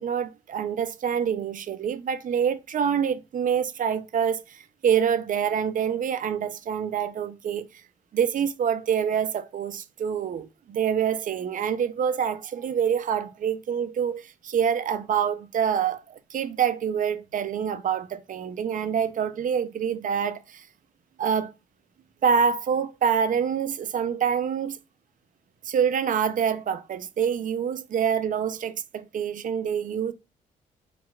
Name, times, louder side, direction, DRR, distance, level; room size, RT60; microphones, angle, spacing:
voice 1, 0.0-7.7 8.1-20.6 21.2-21.5 22.2-24.8 25.6-30.1, right 7 dB, 50° right, 0.5 m, -26 dB
4.4 x 2.3 x 2.3 m
hypercardioid pair, 50°, 18 cm